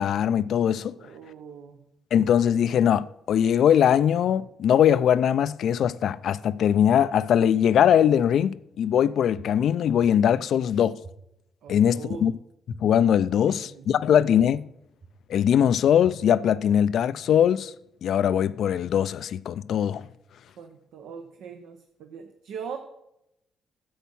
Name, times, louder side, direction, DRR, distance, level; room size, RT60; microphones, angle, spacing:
voice 1, 0.0-0.9 2.1-11.0 11.7-12.3 12.8-14.7 15.3-17.7 18.0-20.0, left 9 dB, 70° left, 0.3 m, -21 dB
voice 2, 0.9-1.8 11.6-12.3 13.5-14.1 20.6-22.8, right 6 dB, 80° right, 0.9 m, -41 dB
sound 1, 9.4-9.5 10.0-10.1 11.0-11.1 11.7-11.8 12.7-12.8 13.3-13.4 14.4-14.5 15.0-15.1 16.0-16.1 16.7-16.8, right 4 dB, 45° right, 2.2 m, -43 dB
10.0 x 7.2 x 5.5 m
cardioid pair, 90°, 0 cm